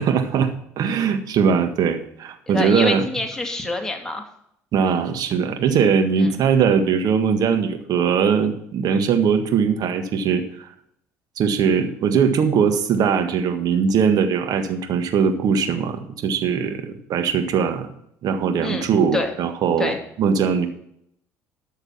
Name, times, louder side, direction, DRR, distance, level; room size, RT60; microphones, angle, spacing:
voice 1, 0.0-3.0 4.7-10.7 11.4-17.9 18.2-20.7, right 6 dB, 55° right, 7 dB, 1.6 m, -20 dB
voice 2, 2.5-4.2 6.2-6.3 18.6-19.3 19.8-20.0, left 2 dB, 10° left, 2 dB, 2.5 m, -26 dB
13.0 x 6.6 x 5.9 m, 0.72 s
hypercardioid pair, 60°, 8 cm